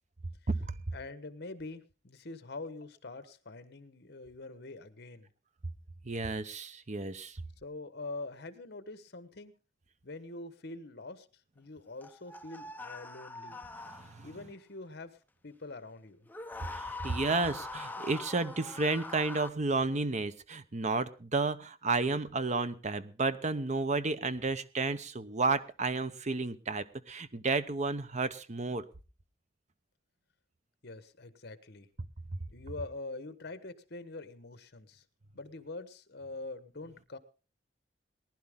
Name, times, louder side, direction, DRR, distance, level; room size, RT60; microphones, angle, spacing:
voice 1, 0.9-5.3 7.6-9.6 10.0-11.3 11.5-13.6 14.2-15.2 15.4-16.3 30.8-31.9 32.5-35.0 35.3-37.2, left 2 dB, 60° left, 12 dB, 1.2 m, -44 dB
voice 2, 6.0-7.4 13.9-14.3 16.7-28.9, right 3 dB, 40° right, 13 dB, 0.8 m, -32 dB
sound 1, 12.0-14.4 16.3-19.5, left 3 dB, 10° left, 0.6 m, -43 dB
19.5 x 11.0 x 3.7 m, 0.35 s
head